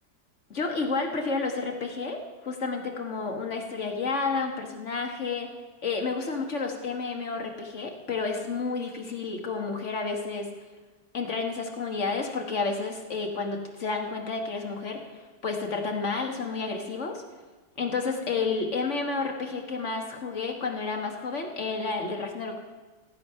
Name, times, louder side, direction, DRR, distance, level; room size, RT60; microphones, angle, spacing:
voice 1, 0.5-5.5 5.8-10.5 11.1-17.2 17.8-22.6, left 4 dB, 50° left, 3 dB, 1.6 m, -31 dB
15.5 x 9.3 x 5.6 m, 1.3 s
omnidirectional pair, 1.7 m